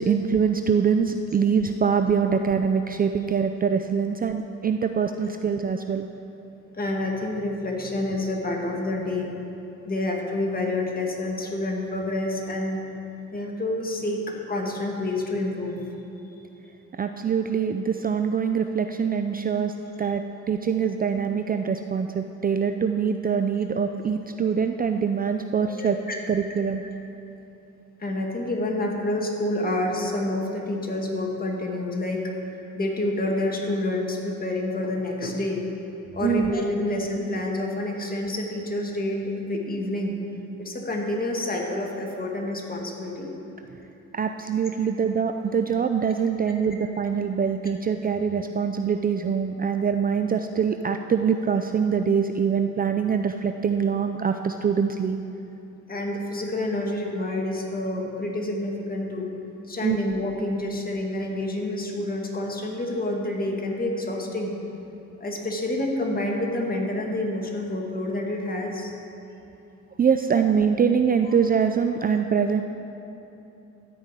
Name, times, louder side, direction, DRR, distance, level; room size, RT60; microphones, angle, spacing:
voice 1, 0.0-6.1 17.0-26.8 36.2-36.5 44.1-55.2 59.8-60.0 70.0-72.6, right 6 dB, 30° right, 7 dB, 0.4 m, -24 dB
voice 2, 6.7-9.3 9.9-12.8 13.3-15.8 25.8-26.2 28.0-32.2 32.8-35.7 36.1-40.2 40.6-43.4 55.9-59.3 59.7-64.5 65.2-68.9, left 1 dB, 30° left, 0 dB, 2.1 m, -28 dB
13.5 x 5.4 x 8.2 m, 2.9 s
cardioid pair, 90°, 30 cm